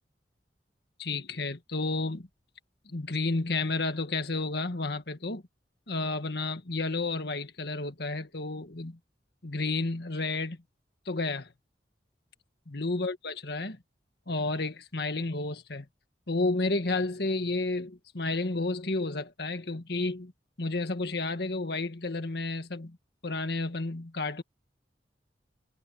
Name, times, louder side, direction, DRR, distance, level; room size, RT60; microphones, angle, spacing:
voice 1, 1.0-2.3 2.9-5.4 5.9-9.0 9.4-10.6 11.1-11.5 12.7-13.8 14.3-15.9 16.3-20.3 20.6-23.0 23.2-24.4, left 3 dB, 65° left, 1.7 m, -31 dB
head